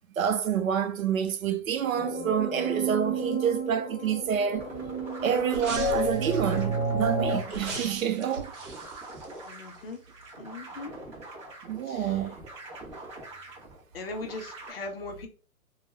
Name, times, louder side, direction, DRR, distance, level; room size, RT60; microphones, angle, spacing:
voice 1, 0.2-4.7 5.2-8.5 11.6-12.4, right 8 dB, 70° right, 0.5 m, -28 dB
sound 1, 1.9-7.4, right 2 dB, 20° left, 1.0 m, -30 dB
sound 2, 4.5-14.7, right 2 dB, 20° right, 0.7 m, -45 dB
sound 3, 5.5-6.6 7.5-9.9 10.2-10.3, right 3 dB, 50° right, 1.0 m, -39 dB
voice 2, 9.5-10.0 10.4-10.9 11.9-12.1 13.9-15.3, left 3 dB, 40° left, 0.6 m, -39 dB
2.2 x 2.1 x 3.1 m
hypercardioid pair, 145°, 44 cm